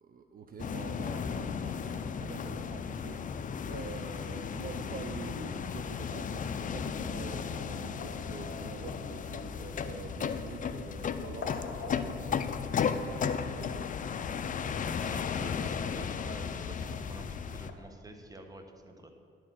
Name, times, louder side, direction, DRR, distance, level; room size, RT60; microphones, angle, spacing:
voice 1, 0.0-13.9, right 5 dB, 45° right, 5 dB, 0.6 m, -46 dB
sound 1, 0.6-17.7, left 6 dB, 40° left, 0.5 m, -35 dB
sound 2, 7.7-17.7, left 4 dB, 65° left, 1.4 m, -50 dB
voice 2, 14.8-19.1, right 1 dB, 20° right, 5 dB, 1.1 m, -49 dB
10.5 x 4.5 x 7.4 m, 2.7 s
cardioid pair, 90°, 20 cm